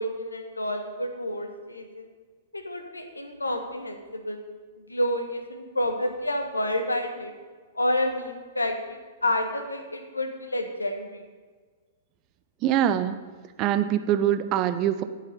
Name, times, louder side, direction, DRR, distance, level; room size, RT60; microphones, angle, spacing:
voice 1, 0.0-2.1 2.5-4.4 4.9-7.3 7.7-11.2, left 1 dB, 85° left, 5 dB, 1.5 m, -29 dB
voice 2, 12.6-13.2 13.6-15.0, right 10 dB, 35° right, 12 dB, 0.7 m, -23 dB
10.5 x 9.0 x 5.7 m, 1.5 s
figure-of-eight pair, 105°, 0 cm